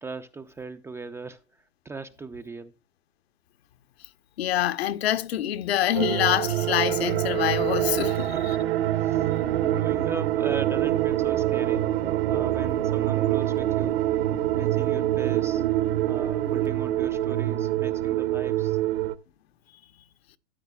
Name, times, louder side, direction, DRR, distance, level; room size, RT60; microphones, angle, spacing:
voice 1, 0.0-1.4 1.8-2.8 8.1-8.6 9.0-11.8 12.2-15.6 16.0-18.8, right 3 dB, 10° right, 0.4 m, -39 dB
voice 2, 4.4-8.6, left 12 dB, 65° left, 1.0 m, -26 dB
sound 1, 5.9-19.2, right 13 dB, 65° right, 1.1 m, -25 dB
sound 2, 9.2-16.7, right 11 dB, 80° right, 1.7 m, -33 dB
13.5 x 8.6 x 2.3 m
hypercardioid pair, 115°, 33 cm